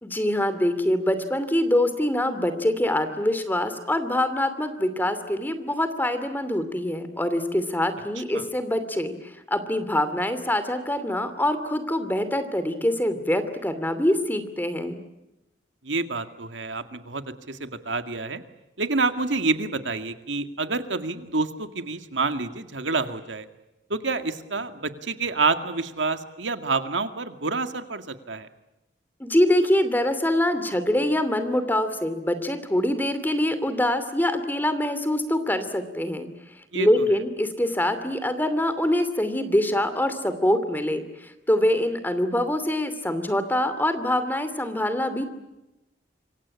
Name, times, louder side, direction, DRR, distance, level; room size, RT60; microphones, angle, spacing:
voice 1, 0.0-9.1 9.5-15.0 29.2-36.3 36.7-45.2, left 1 dB, 10° left, 10 dB, 2.7 m, -24 dB
voice 2, 15.8-18.4 18.8-23.5 23.9-28.5 36.7-36.9, right 3 dB, 90° right, 8 dB, 2.1 m, -28 dB
27.0 x 24.5 x 8.6 m, 0.96 s
head